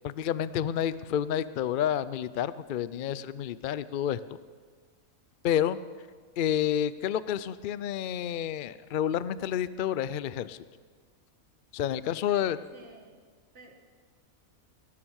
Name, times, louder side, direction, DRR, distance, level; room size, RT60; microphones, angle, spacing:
voice 1, 0.0-4.2 5.4-5.8 6.4-10.6 11.7-12.6, left 10 dB, 70° left, 16 dB, 0.4 m, -29 dB
voice 2, 11.9-13.2 13.5-13.9, right 2 dB, 50° right, 3 dB, 2.0 m, -54 dB
19.5 x 11.5 x 6.4 m, 1.6 s
omnidirectional pair, 1.5 m